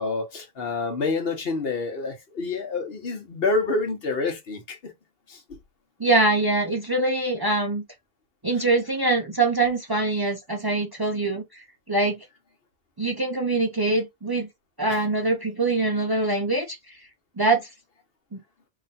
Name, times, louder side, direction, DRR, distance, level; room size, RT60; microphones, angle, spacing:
voice 1, 0.0-4.9 5.3-5.6 14.9-15.0, left 3 dB, 70° left, 1.2 m, -28 dB
voice 2, 6.0-7.8 8.4-11.4 11.9-12.2 13.0-14.5 14.8-16.8 17.4-17.7 18.3-18.4, right 2 dB, 25° right, 0.6 m, -23 dB
3.0 x 2.3 x 4.1 m
omnidirectional pair, 1.0 m